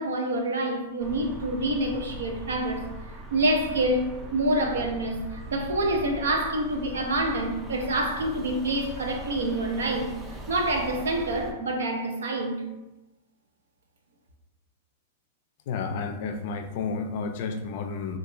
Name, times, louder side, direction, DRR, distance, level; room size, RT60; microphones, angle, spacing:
voice 1, 0.0-2.9 3.3-10.1 10.5-12.6, right 1 dB, 90° right, 0.4 m, -27 dB
sound 1, 1.0-11.5, right 1 dB, 15° right, 0.4 m, -40 dB
voice 2, 15.7-18.2, left 4 dB, 55° left, 0.3 m, -31 dB
2.4 x 2.2 x 3.0 m
hypercardioid pair, 125°, 0 cm